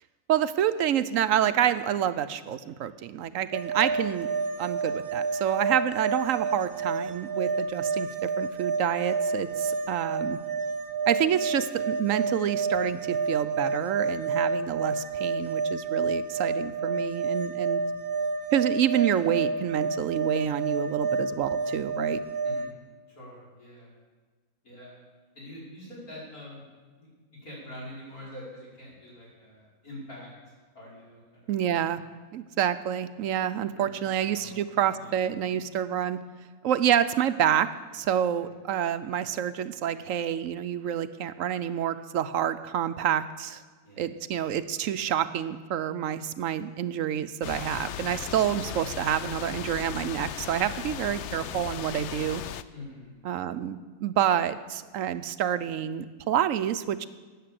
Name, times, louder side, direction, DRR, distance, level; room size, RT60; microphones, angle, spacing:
voice 1, 0.3-4.3 4.6-10.4 11.1-17.8 18.5-22.2 31.5-32.0 32.3-36.2 36.6-43.6 44.0-52.4 53.2-57.1, right 10 dB, 70° right, 12 dB, 1.0 m, -28 dB
sound 1, 3.5-22.7, right 4 dB, 90° right, 1.3 m, -29 dB
voice 2, 22.4-22.7 23.1-23.9 24.6-25.0 25.3-26.6 27.0-27.1 27.4-31.9 33.8-35.2 38.4-38.5 43.8-44.1 52.7-53.1, left 1 dB, 90° left, -7 dB, 6.1 m, -45 dB
sound 2, 47.4-52.6, left 10 dB, 65° left, 0.7 m, -37 dB
12.5 x 9.4 x 7.6 m, 1.4 s
omnidirectional pair, 1.5 m